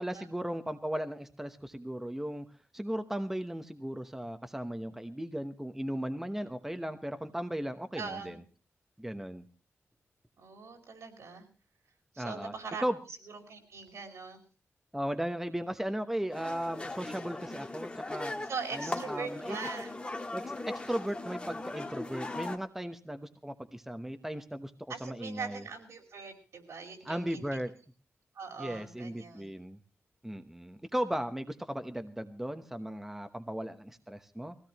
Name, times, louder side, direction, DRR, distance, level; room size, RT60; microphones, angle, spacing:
voice 1, 0.0-2.5 2.7-8.4 9.0-9.4 12.2-12.5 12.8-13.0 14.9-18.3 18.7-19.6 20.3-25.6 27.0-27.7 28.6-29.8 30.2-34.6, equal, 5° right, 8 dB, 1.0 m, -36 dB
voice 2, 7.9-8.4 10.4-11.5 12.1-12.8 13.3-14.4 18.5-20.0 24.9-27.6 28.3-29.5, right 5 dB, 80° right, 3 dB, 5.0 m, -41 dB
sound 1, 16.3-22.6, left 2 dB, 20° left, 1.6 m, -39 dB
22.0 x 16.5 x 3.0 m, 0.36 s
wide cardioid pair, 150°, 5 cm